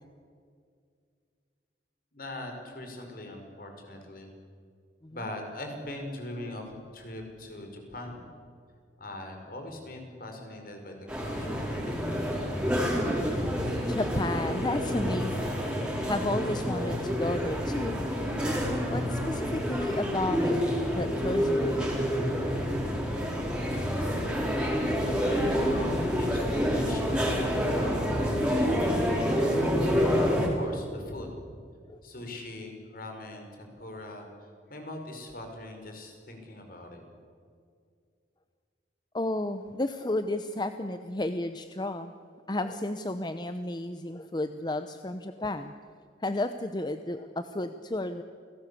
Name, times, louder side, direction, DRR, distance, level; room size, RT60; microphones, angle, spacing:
voice 1, 2.1-4.3 5.1-8.2 9.0-12.3 25.0-29.3 30.0-31.3 32.0-37.0, left 1 dB, 55° left, 4 dB, 5.4 m, -41 dB
sound 1, 11.1-30.5, equal, 5° right, 4.8 m, -28 dB
voice 2, 13.9-15.6 16.1-18.0 18.9-20.6 20.9-22.0 31.9-32.0 39.1-42.1 42.5-45.7 46.2-48.2, left 1 dB, 25° left, 9 dB, 0.8 m, -32 dB
29.0 x 18.5 x 8.5 m, 2.2 s
head